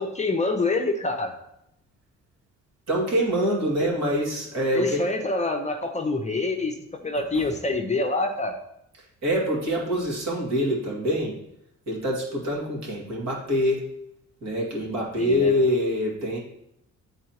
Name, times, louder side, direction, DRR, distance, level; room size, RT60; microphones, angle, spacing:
voice 1, 0.0-1.3 4.7-6.7 7.0-8.6 14.9-15.5, left 2 dB, 25° left, 4 dB, 0.7 m, -26 dB
voice 2, 2.9-5.1 7.3-7.5 9.2-11.4 11.9-13.9 14.4-16.4, equal, 60° right, -3 dB, 2.2 m, -25 dB
9.0 x 3.9 x 2.9 m, 0.79 s
cardioid pair, 90°, 30 cm